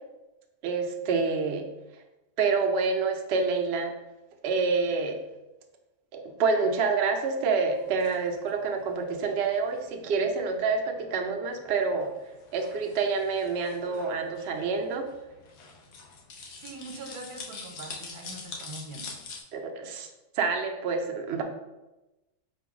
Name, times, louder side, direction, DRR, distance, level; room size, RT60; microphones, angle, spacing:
voice 1, 0.6-1.7 2.4-3.9 4.4-5.2 6.1-12.1 12.5-15.1 19.5-20.1 20.3-21.4, right 4 dB, 65° right, 4 dB, 0.7 m, -27 dB
sound 1, 7.7-19.4, left 4 dB, 70° left, 1.2 m, -46 dB
voice 2, 16.6-19.1, right 3 dB, 80° right, 2 dB, 1.1 m, -42 dB
4.4 x 2.2 x 4.7 m, 1.0 s
omnidirectional pair, 1.6 m